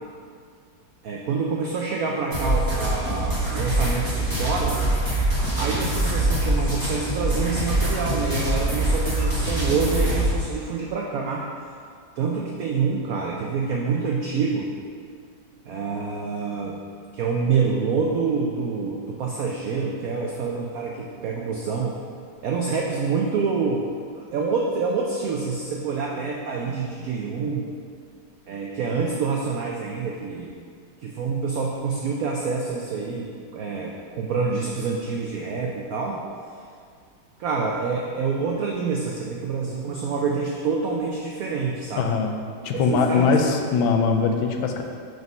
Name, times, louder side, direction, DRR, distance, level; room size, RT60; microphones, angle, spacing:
voice 1, 1.0-4.8 5.6-11.4 12.2-14.7 15.7-16.7 17.1-22.0 22.4-23.9 24.1-27.7 28.5-30.5 31.0-36.2 37.4-42.1 42.7-43.3, right 5 dB, 80° right, -1 dB, 0.7 m, -27 dB
sound 1, 2.3-10.3, right 1 dB, 10° right, 1.2 m, -24 dB
voice 2, 41.9-42.4 42.6-44.8, left 5 dB, 90° left, 4 dB, 1.4 m, -21 dB
4.7 x 4.0 x 5.3 m, 2.2 s
omnidirectional pair, 2.1 m